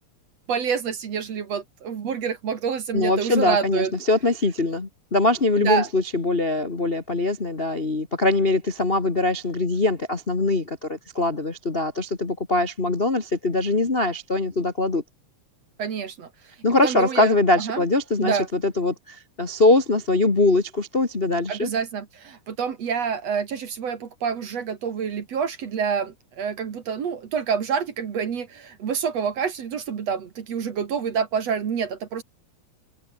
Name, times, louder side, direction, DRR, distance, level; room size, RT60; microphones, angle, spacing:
voice 1, 0.5-3.9 5.6-5.9 15.8-16.3 16.8-17.8 18.2-18.5 21.5-32.2, right 6 dB, 50° right, 2.8 m, -27 dB
voice 2, 2.9-15.0 16.6-21.7, left 2 dB, 25° left, 1.2 m, -22 dB
open air
omnidirectional pair, 4.1 m